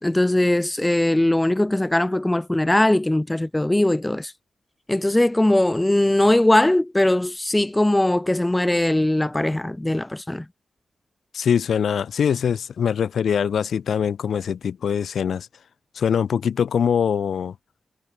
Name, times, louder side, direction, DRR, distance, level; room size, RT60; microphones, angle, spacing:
voice 1, 0.0-4.3 4.9-10.4, left 1 dB, 10° left, 1.2 m, -20 dB
voice 2, 11.3-15.5 15.9-17.5, left 7 dB, 75° left, 6.6 m, -23 dB
wide cardioid pair, 150°, 0 cm